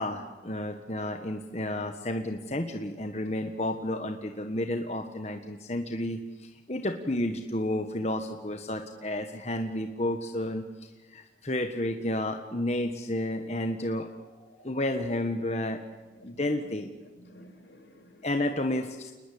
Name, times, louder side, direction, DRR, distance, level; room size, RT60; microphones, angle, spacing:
voice 1, 0.0-10.6 11.1-14.1 14.6-15.8 16.2-16.9 18.2-19.1, left 1 dB, 35° left, 5 dB, 1.5 m, -31 dB
voice 2, 13.8-14.8 15.7-15.9 16.1-16.6 17.2-18.3, left 1 dB, 75° left, 6 dB, 5.6 m, -54 dB
28.5 x 21.0 x 8.7 m, 1.2 s
head